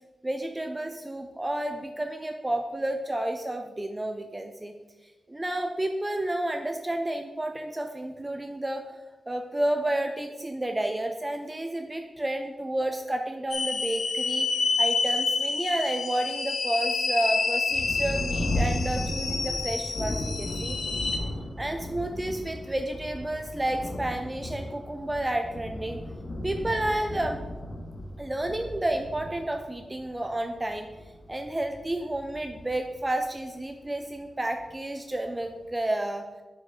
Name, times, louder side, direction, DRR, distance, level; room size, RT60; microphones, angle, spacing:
voice 1, 0.2-4.7 5.0-9.0 9.3-20.8 21.6-26.0 26.4-27.4 28.2-30.9 31.3-36.3, right 1 dB, 20° right, 5 dB, 0.5 m, -31 dB
sound 1, 13.5-21.2, left 4 dB, 65° left, 0.7 m, -28 dB
Thunder, 17.7-33.8 34.5-34.6 35.2-35.6, left 1 dB, 50° left, 1.3 m, -35 dB
6.9 x 6.1 x 3.6 m, 1.2 s
cardioid pair, 75°, 0 cm